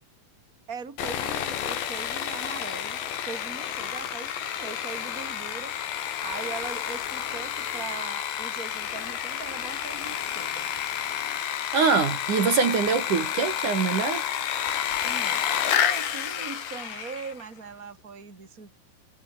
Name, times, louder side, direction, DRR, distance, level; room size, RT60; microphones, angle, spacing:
voice 1, 0.7-5.8 6.2-10.7 15.0-18.8, right 5 dB, 20° right, 4.3 m, -40 dB
Sawing, 1.0-17.4, left 9 dB, 70° left, 4.8 m, -30 dB
voice 2, 11.7-14.2, right 5 dB, 50° right, 3.4 m, -23 dB
omnidirectional pair, 5.3 m